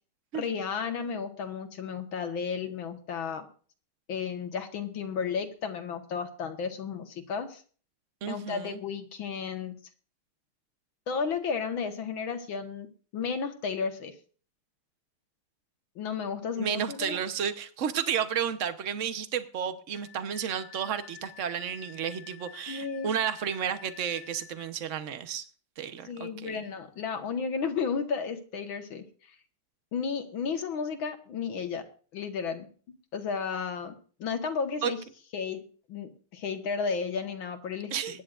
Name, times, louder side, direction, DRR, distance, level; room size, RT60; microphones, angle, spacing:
voice 1, 0.3-3.5 4.1-7.6 8.3-9.7 11.1-14.1 16.0-17.2 22.7-23.1 26.1-29.0 29.9-31.9 32.1-32.7 33.1-35.0 35.3-35.6 35.9-38.2, left 5 dB, 65° left, 6 dB, 2.1 m, -33 dB
voice 2, 8.2-8.8 16.6-25.5 25.8-26.6 34.8-34.9 37.9-38.2, right 8 dB, 55° right, 10 dB, 0.9 m, -32 dB
Wind instrument woodwind instrument, 20.0-24.7, left 10 dB, 90° left, 2.3 m, -50 dB
23.5 x 10.0 x 2.5 m, 0.41 s
omnidirectional pair, 2.4 m